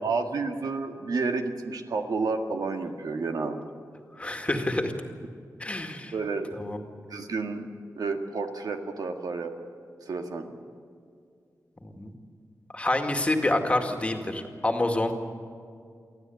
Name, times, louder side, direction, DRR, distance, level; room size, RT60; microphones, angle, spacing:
voice 1, 0.0-3.7 6.1-6.6 7.1-7.7 8.0-9.5 10.0-10.5, right 4 dB, 85° right, 4 dB, 1.8 m, -30 dB
voice 2, 4.2-4.9 5.6-6.1 6.6-6.8 11.8-12.1 12.7-15.1, left 1 dB, 20° left, 4 dB, 2.0 m, -27 dB
24.0 x 15.0 x 9.3 m, 2.3 s
wide cardioid pair, 125°, 6 cm